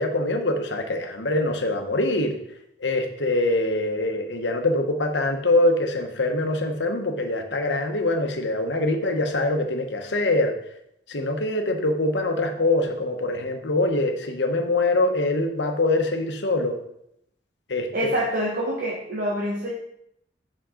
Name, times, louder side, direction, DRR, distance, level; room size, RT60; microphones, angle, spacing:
voice 1, 0.0-2.4 2.8-10.5 11.1-16.8 17.7-17.9, left 2 dB, 80° left, 5 dB, 1.2 m, -24 dB
voice 2, 17.9-19.7, equal, 55° right, -4 dB, 1.5 m, -26 dB
8.8 x 6.4 x 3.8 m, 0.76 s
head